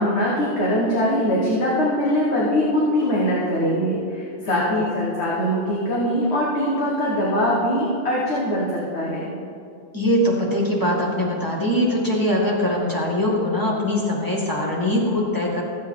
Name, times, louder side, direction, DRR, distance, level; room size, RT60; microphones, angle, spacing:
voice 1, 0.0-9.3, equal, 85° left, -5 dB, 1.7 m, -22 dB
voice 2, 4.5-4.8 9.9-15.6, left 1 dB, 20° left, -4 dB, 1.9 m, -22 dB
15.0 x 8.0 x 3.7 m, 2.5 s
omnidirectional pair, 1.1 m